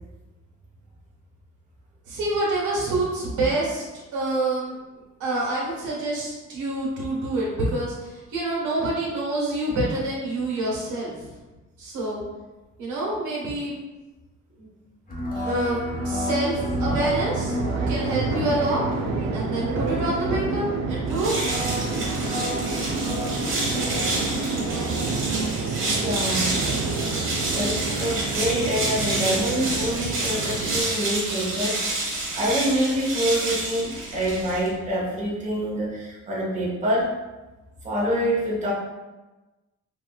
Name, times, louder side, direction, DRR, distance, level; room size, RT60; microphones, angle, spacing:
voice 1, 2.1-3.8 4.1-4.8 5.2-11.3 11.8-12.2 12.8-13.8 14.6-14.7 15.5-17.6 17.9-18.8 19.3-21.4, right 2 dB, 80° right, -5 dB, 1.2 m, -27 dB
sound 1, 15.1-25.1, left 1 dB, 30° left, 1.0 m, -32 dB
sound 2, 16.5-30.8, right 4 dB, 65° right, 0.5 m, -29 dB
sound 3, 21.1-34.8, right 2 dB, 45° right, 1.2 m, -29 dB
voice 2, 25.7-26.6 27.2-37.1 37.8-38.7, equal, 25° right, -4 dB, 0.9 m, -26 dB
4.2 x 2.3 x 2.3 m, 1.1 s
cardioid pair, 90°, 30 cm